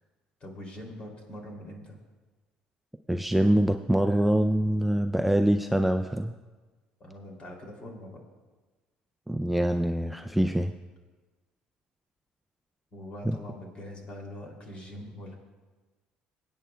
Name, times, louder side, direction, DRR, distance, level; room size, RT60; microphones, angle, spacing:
voice 1, 0.4-2.0 7.0-8.2 12.9-15.4, left 1 dB, 40° left, 1 dB, 2.7 m, -43 dB
voice 2, 3.1-6.3 9.3-10.7 13.3-13.4, right 1 dB, 5° right, 6 dB, 0.3 m, -24 dB
22.5 x 8.9 x 2.2 m, 1.3 s
cardioid pair, 110°, 3 cm